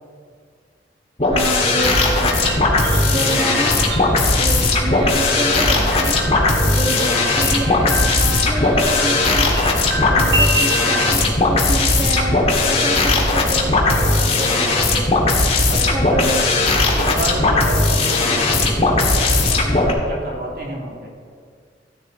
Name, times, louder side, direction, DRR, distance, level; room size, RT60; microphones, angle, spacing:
sound 1, 1.2-19.9, left 2 dB, 35° left, 1.9 m, -17 dB
voice 1, 1.3-2.7 3.1-3.9 4.3-6.2 6.6-9.7 10.1-15.2 15.6-16.5, right 1 dB, 30° right, -2 dB, 1.3 m, -28 dB
sound 2, 1.8-11.2, equal, 80° right, 1.4 m, -28 dB
voice 2, 3.0-3.4 9.9-10.1 15.7-16.2 16.7-21.1, right 1 dB, 60° right, -2 dB, 2.7 m, -30 dB
15.0 x 10.5 x 4.1 m, 2.1 s
head